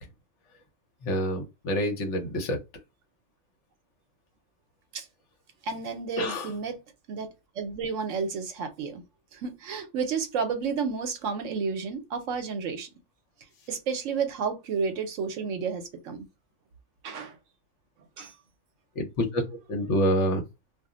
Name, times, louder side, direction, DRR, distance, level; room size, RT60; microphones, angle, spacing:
voice 1, 1.0-2.6 6.2-6.5 19.0-19.4 19.7-20.4, equal, 65° left, 1.0 m, -27 dB
voice 2, 5.6-6.8 7.1-7.3 7.6-9.0 9.3-12.9 13.7-16.2 17.0-17.4 18.2-18.3, right 5 dB, 70° right, 0.9 m, -31 dB
2.4 x 2.0 x 3.6 m
omnidirectional pair, 1.4 m